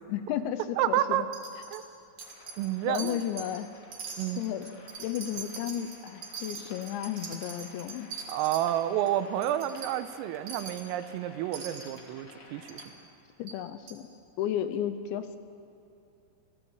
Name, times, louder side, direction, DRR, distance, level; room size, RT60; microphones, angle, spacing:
voice 1, 0.1-1.3 2.9-3.7 4.4-4.7 5.0-8.1 13.4-14.1 14.4-15.4, left 10 dB, 80° left, 10 dB, 2.7 m, -33 dB
voice 2, 0.8-1.3 1.7-1.8 2.6-3.2 4.2-4.4 8.3-12.9, right 12 dB, 90° right, 11 dB, 3.5 m, -30 dB
Wind chime, 1.3-1.8 2.2-2.7 2.9-3.6 3.9-8.6 9.1-9.2 9.4-9.9 10.5-10.9 11.5-12.0 12.7-12.9 13.5-13.6 13.9-14.0, right 5 dB, 45° right, 3.3 m, -42 dB
sound 1, 2.2-12.9, left 3 dB, 40° left, 2.4 m, -53 dB
27.5 x 17.0 x 8.0 m, 2.7 s
omnidirectional pair, 5.9 m